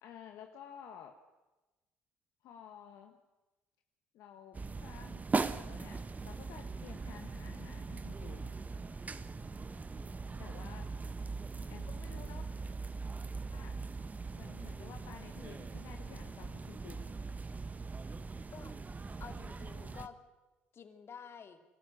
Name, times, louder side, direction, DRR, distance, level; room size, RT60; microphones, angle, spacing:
voice 1, 0.0-1.1 2.4-3.2 4.1-8.6 10.4-10.9 11.7-12.5 13.5-13.7 14.3-17.1, left 9 dB, 70° left, 5 dB, 1.5 m, -52 dB
sound 1, 4.5-20.1, right 4 dB, 30° right, 1.3 m, -40 dB
voice 2, 19.2-20.1 20.7-21.6, left 7 dB, 50° left, 8 dB, 2.6 m, -50 dB
23.5 x 13.5 x 9.9 m, 1.1 s
hypercardioid pair, 60°, 5 cm